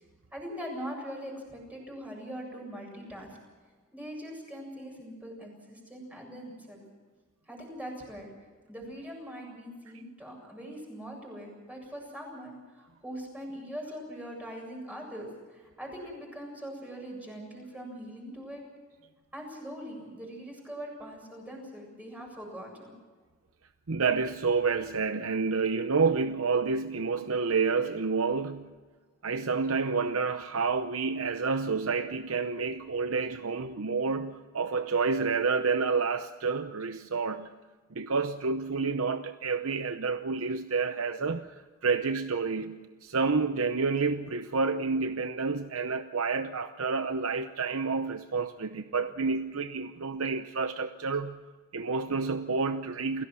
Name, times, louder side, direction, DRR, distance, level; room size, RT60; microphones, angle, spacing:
voice 1, 0.3-3.3 3.9-6.8 7.5-8.3 8.7-18.6 19.3-22.9, equal, 5° right, 0 dB, 7.6 m, -42 dB
voice 2, 23.9-28.7 29.2-37.5 37.9-51.4 51.7-53.2, right 4 dB, 85° right, 9 dB, 0.8 m, -29 dB
29.0 x 17.0 x 6.2 m, 1.4 s
head